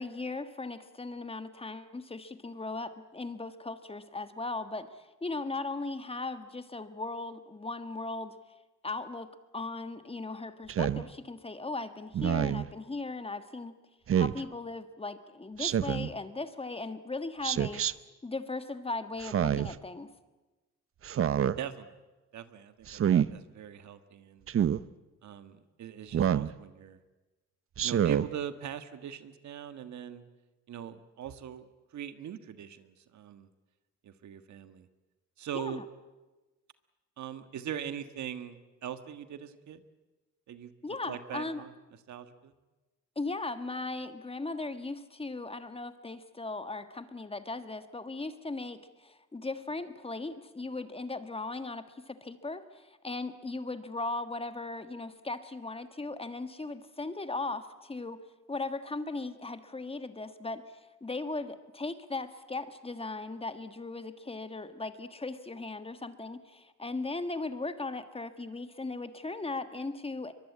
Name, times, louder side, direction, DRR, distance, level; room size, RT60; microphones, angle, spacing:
voice 1, 0.0-8.3 8.8-13.8 14.1-17.8 18.2-20.1 35.5-35.8 40.8-41.6 43.1-58.2 58.5-70.3, left 3 dB, 20° left, 10 dB, 1.5 m, -38 dB
Speech synthesizer, 10.7-11.0 12.1-12.7 14.1-14.4 15.6-16.1 17.4-17.9 19.2-19.8 21.0-21.6 22.9-23.3 24.5-24.8 26.1-26.5 27.8-28.3, right 9 dB, 45° right, 0.7 m, -27 dB
voice 2, 21.6-21.9 22.3-23.0 23.3-24.5 25.2-27.0 27.8-30.2 30.7-31.7 31.9-33.5 34.0-34.9 35.4-35.8 37.2-39.8 40.5-41.7 42.1-42.5, right 9 dB, 70° right, 10 dB, 1.6 m, -41 dB
23.0 x 22.5 x 8.6 m, 1.2 s
cardioid pair, 90°, 30 cm